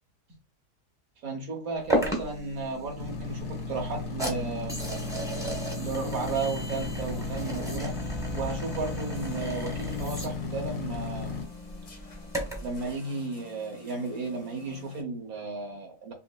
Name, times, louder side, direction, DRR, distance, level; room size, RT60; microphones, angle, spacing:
voice 1, 1.2-4.8 5.8-8.0 8.3-11.3 12.6-16.1, right 3 dB, 65° right, 1.5 m, -34 dB
sound 1, 1.9-12.8, right 1 dB, 5° right, 0.8 m, -35 dB
sound 2, 3.0-11.4, left 4 dB, 80° left, 1.4 m, -35 dB
sound 3, 9.1-15.0, left 5 dB, 35° left, 0.8 m, -49 dB
5.6 x 2.0 x 2.3 m
omnidirectional pair, 1.7 m